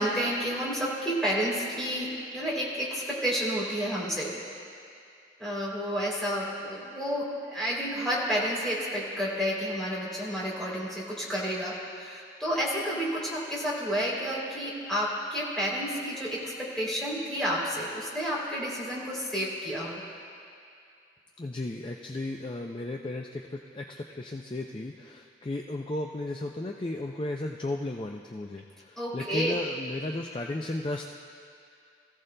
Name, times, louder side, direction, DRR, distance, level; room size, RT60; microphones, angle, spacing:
voice 1, 0.0-4.4 5.4-20.0 29.0-29.6, equal, 5° left, -6 dB, 3.0 m, -30 dB
voice 2, 21.4-31.1, left 2 dB, 25° left, 2 dB, 0.4 m, -35 dB
22.5 x 15.0 x 2.2 m, 2.5 s
head